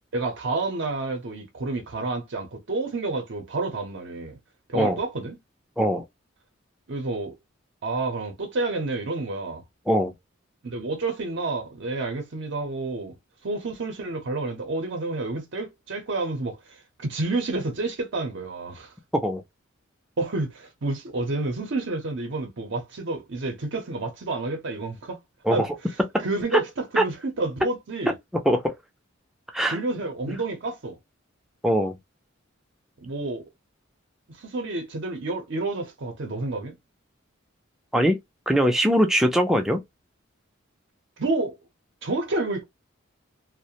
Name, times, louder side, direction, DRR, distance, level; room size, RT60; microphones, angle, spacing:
voice 1, 0.1-4.4 4.7-5.4 6.9-7.3 7.8-9.6 10.6-13.2 13.4-18.9 20.2-25.2 25.5-25.7 26.2-28.1 29.7-31.0 33.0-33.5 34.3-36.8 41.2-41.6 42.0-42.6, right 2 dB, 60° right, 0.6 m, -29 dB
voice 2, 31.6-32.0 37.9-38.2 38.5-39.8, equal, ahead, 0.4 m, -21 dB
2.3 x 2.1 x 2.7 m
head